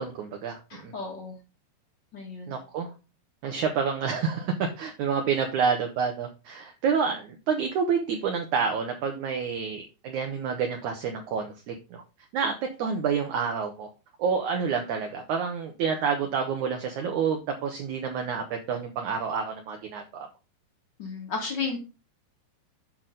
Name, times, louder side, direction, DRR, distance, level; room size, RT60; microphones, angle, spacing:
voice 1, 0.0-0.9 2.5-2.9 3.4-12.0 12.3-13.9 14.2-20.3, right 6 dB, 65° right, 3 dB, 2.1 m, -28 dB
voice 2, 0.7-1.4 2.1-2.6 21.0-21.8, left 4 dB, 35° left, 1 dB, 2.1 m, -33 dB
10.5 x 6.1 x 3.9 m, 0.30 s
omnidirectional pair, 4.3 m